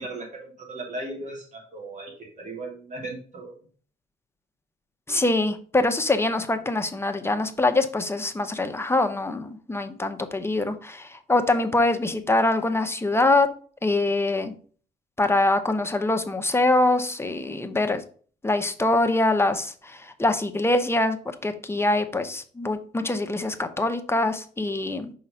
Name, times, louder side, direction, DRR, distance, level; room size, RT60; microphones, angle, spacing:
voice 1, 0.0-3.6, right 2 dB, 40° right, 0 dB, 2.8 m, -37 dB
voice 2, 5.1-13.5 13.8-14.5 15.2-18.0 18.4-25.1, left 2 dB, 10° left, 7 dB, 0.9 m, -24 dB
5.4 x 3.9 x 5.5 m, 0.43 s
cardioid pair, 90°, 20 cm